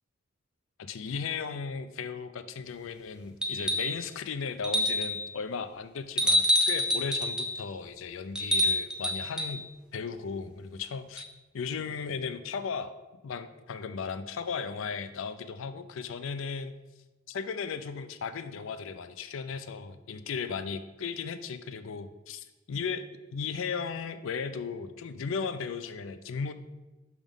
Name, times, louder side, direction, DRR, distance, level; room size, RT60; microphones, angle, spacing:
voice 1, 0.8-9.7 9.9-11.2 11.5-13.0 13.2-16.8 17.3-23.1 23.3-26.5, left 5 dB, 75° left, 11 dB, 0.4 m, -36 dB
sound 1, 3.4-4.0 4.6-5.2 6.2-7.6 8.4-9.6 11.2-11.3, left 1 dB, 5° right, 0.5 m, -27 dB
6.1 x 3.6 x 5.4 m, 1.1 s
head